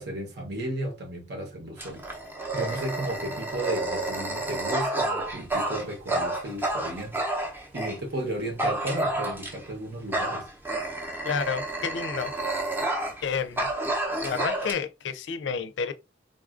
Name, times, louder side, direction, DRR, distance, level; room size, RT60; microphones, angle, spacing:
voice 1, 0.0-2.1 2.5-7.2 7.7-10.5, right 1 dB, 65° right, 1.0 m, -34 dB
Dog, 1.8-8.0 8.6-9.7 10.1-13.3 13.6-14.7, right 2 dB, 10° right, 0.6 m, -30 dB
voice 2, 11.2-12.3 13.2-13.7 14.2-15.9, left 6 dB, 80° left, 0.4 m, -30 dB
3.9 x 2.4 x 2.4 m
head